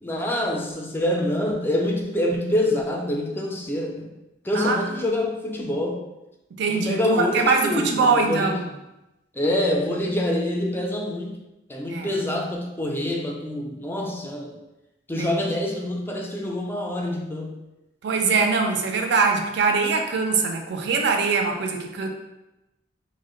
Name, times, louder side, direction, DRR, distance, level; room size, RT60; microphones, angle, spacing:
voice 1, 0.0-4.1 4.4-6.0 6.7-8.5 9.4-11.4 11.7-14.6 15.1-17.6, left 1 dB, 10° left, 0 dB, 0.4 m, -26 dB
voice 2, 4.5-4.9 6.6-8.6 11.9-12.1 15.2-15.3 18.0-22.1, right 4 dB, 65° right, 3 dB, 0.4 m, -22 dB
2.7 x 2.1 x 3.7 m, 0.95 s
head